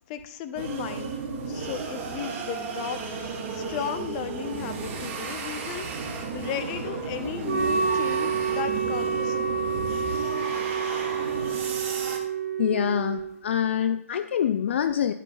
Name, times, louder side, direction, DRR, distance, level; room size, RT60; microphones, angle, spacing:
voice 1, 0.1-1.2 1.5-6.1 6.3-9.4, left 8 dB, 30° left, 9 dB, 0.8 m, -35 dB
sound 1, 0.5-12.2, right 4 dB, 25° right, 1.8 m, -34 dB
Wind instrument woodwind instrument, 7.4-13.3, right 6 dB, 40° right, 2.4 m, -28 dB
voice 2, 12.6-15.1, left 9 dB, 50° left, 11 dB, 0.4 m, -25 dB
12.0 x 10.0 x 2.4 m, 0.80 s
hypercardioid pair, 145°, 8 cm